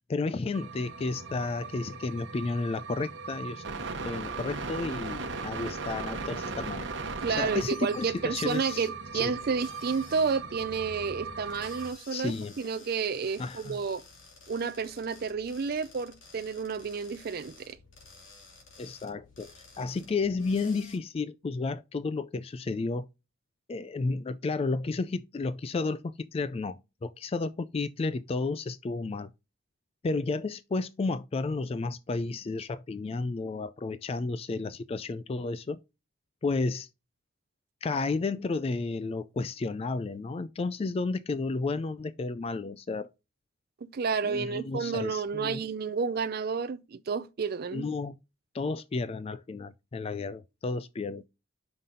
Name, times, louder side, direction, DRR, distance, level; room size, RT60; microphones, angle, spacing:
voice 1, 0.1-3.6 4.0-6.8 7.3-8.9 9.1-9.3 12.1-12.5 13.4-13.8 18.8-23.0 23.7-29.3 30.0-35.8 36.4-36.9 37.8-43.1 44.2-45.6 47.7-48.2 48.5-51.2, left 3 dB, 30° left, 0.3 m, -32 dB
sound 1, 0.5-11.9, right 4 dB, 70° right, 1.1 m, -38 dB
voice 2, 7.2-14.0 14.5-17.8 43.8-47.9, right 5 dB, 50° right, 0.4 m, -31 dB
sound 2, 7.5-21.0, left 3 dB, 90° left, 2.6 m, -53 dB
5.8 x 5.4 x 3.7 m
head